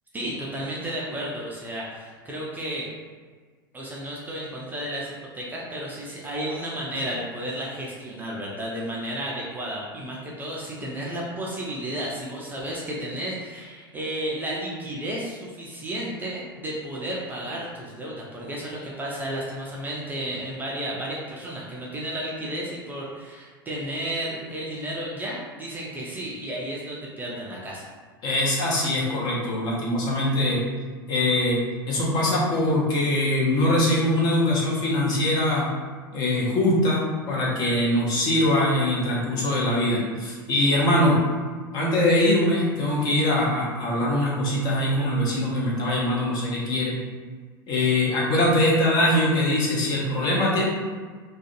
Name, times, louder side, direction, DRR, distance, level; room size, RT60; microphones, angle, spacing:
voice 1, 0.1-2.9 3.7-27.8, right 1 dB, 15° right, -4 dB, 0.4 m, -32 dB
voice 2, 28.2-30.6 31.1-31.6 31.9-35.7 36.1-41.2 41.7-47.0 47.7-50.7, left 1 dB, 35° left, -5 dB, 0.7 m, -22 dB
2.4 x 2.2 x 2.5 m, 1.5 s
figure-of-eight pair, 85°, 12 cm